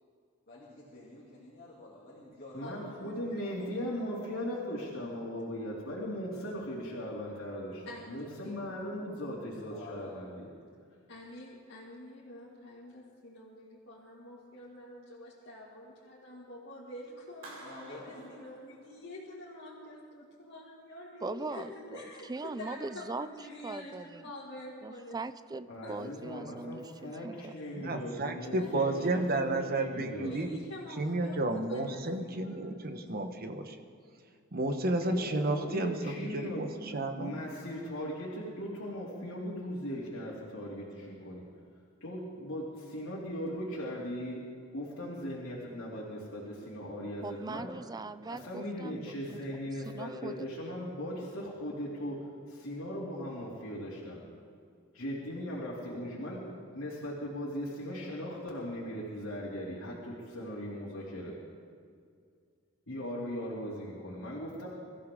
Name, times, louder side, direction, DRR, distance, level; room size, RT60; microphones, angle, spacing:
voice 1, 0.5-2.7 3.1-3.5 9.7-10.4 17.5-18.3 21.4-22.0, left 2 dB, 45° left, -6 dB, 2.9 m, -49 dB
voice 2, 2.5-10.5 25.7-30.4 35.0-36.7 37.2-41.4 42.0-44.4 44.7-47.7 48.3-54.2 54.9-56.4 56.7-61.3 62.9-64.7, equal, 80° left, -6 dB, 2.8 m, -38 dB
voice 3, 7.9-8.6 11.1-24.0 24.2-25.2 25.7-25.9 27.6-27.8 28.5-29.2 30.2-33.1, left 1 dB, 60° left, -7 dB, 2.3 m, -47 dB
Clapping, 17.4-19.3, right 2 dB, 80° right, 3.0 m, -51 dB
voice 4, 21.2-23.3 23.6-24.2 24.8-27.5 47.2-49.2 49.7-50.5, right 3 dB, 20° right, 14 dB, 0.4 m, -40 dB
voice 5, 27.8-30.6 31.0-33.8 34.5-37.4, right 2 dB, 45° right, 6 dB, 1.2 m, -32 dB
23.5 x 14.5 x 3.8 m, 2.2 s
head